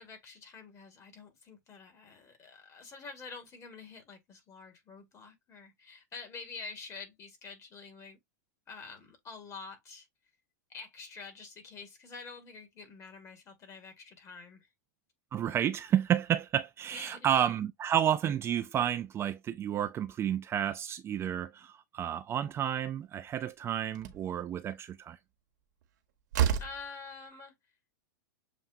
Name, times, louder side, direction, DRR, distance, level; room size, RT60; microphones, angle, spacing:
voice 1, 0.0-8.2 8.7-10.1 10.7-14.7 16.9-17.3 26.6-27.5, left 4 dB, 30° left, 1.9 m, -47 dB
voice 2, 15.3-25.2, right 10 dB, 25° right, 0.4 m, -31 dB
Slam, 23.3-23.4 23.9-24.3 25.8-25.9 26.3-26.9, right 9 dB, 70° right, 1.1 m, -29 dB
7.1 x 2.5 x 2.6 m
hypercardioid pair, 120°, 10 cm